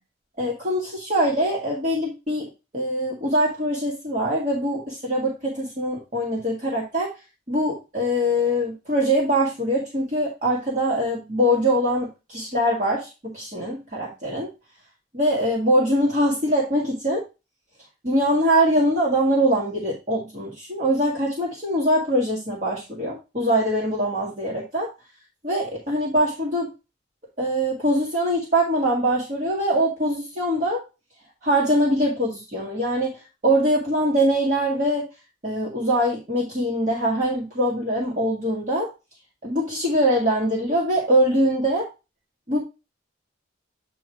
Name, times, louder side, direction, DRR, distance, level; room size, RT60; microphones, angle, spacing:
voice 1, 0.4-2.5 2.7-7.1 7.5-14.5 15.1-17.2 18.0-24.9 25.4-26.7 27.4-30.8 31.4-35.1 35.4-38.9 39.4-41.9 42.5-42.6, equal, 40° right, -4 dB, 2.0 m, -23 dB
8.9 x 3.1 x 4.6 m, 0.27 s
head